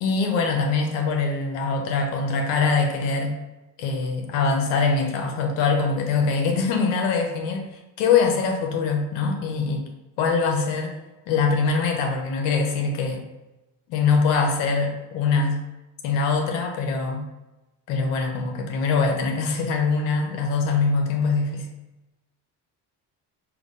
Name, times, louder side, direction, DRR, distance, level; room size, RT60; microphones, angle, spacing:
voice 1, 0.0-3.4 3.8-7.7 8.0-9.9 10.2-10.9 11.3-13.2 13.9-15.6 16.0-17.2 17.9-21.7, left 4 dB, 85° left, 3 dB, 1.3 m, -23 dB
6.0 x 3.0 x 5.4 m, 1.0 s
supercardioid pair, 70°, 43 cm